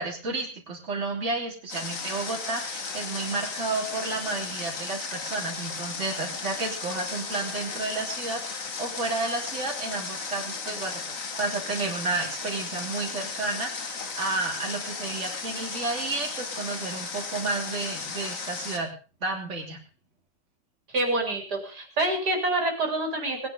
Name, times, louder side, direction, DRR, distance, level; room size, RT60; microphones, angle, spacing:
voice 1, 0.0-18.9 19.2-19.8, right 3 dB, 40° right, 0 dB, 3.6 m, -31 dB
Water, 1.7-18.8, left 4 dB, 50° left, 2.1 m, -35 dB
voice 2, 20.9-23.5, right 2 dB, 65° right, 3 dB, 4.2 m, -27 dB
20.0 x 10.5 x 5.3 m, 0.37 s
omnidirectional pair, 1.9 m